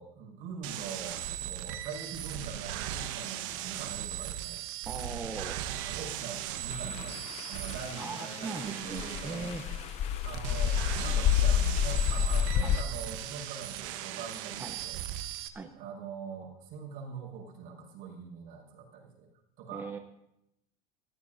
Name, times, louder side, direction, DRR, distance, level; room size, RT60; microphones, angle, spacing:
voice 1, 0.0-4.6 5.8-7.2 7.5-9.5 10.2-15.0 15.7-19.3 19.6-19.9, right 6 dB, 50° right, 0 dB, 5.8 m, -43 dB
sound 1, 0.6-15.5, right 12 dB, 70° right, 1.2 m, -38 dB
voice 2, 4.9-5.6 8.0-9.6 12.6-12.8 14.6-14.7 15.5-15.7 19.7-20.0, right 4 dB, 10° right, 5 dB, 0.8 m, -39 dB
sound 2, 6.7-12.8, left 9 dB, 35° left, 0.5 m, -29 dB
23.0 x 15.0 x 2.7 m, 0.80 s
supercardioid pair, 150°, 18 cm